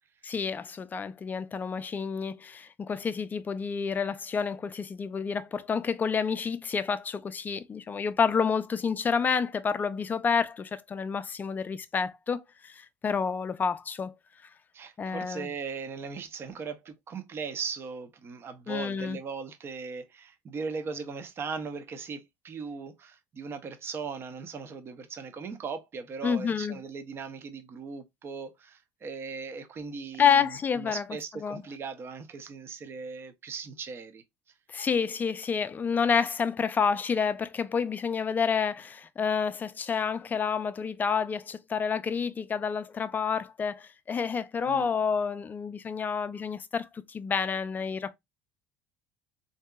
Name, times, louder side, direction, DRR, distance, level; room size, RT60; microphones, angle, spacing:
voice 1, 0.2-14.1 15.0-15.5 18.7-19.2 26.2-26.8 30.2-31.0 31.4-31.6 34.7-48.1, left 6 dB, 25° left, 0.4 m, -29 dB
voice 2, 14.7-34.2 44.6-44.9, right 5 dB, 35° right, 0.7 m, -38 dB
3.6 x 2.7 x 2.3 m
supercardioid pair, 100°, 7 cm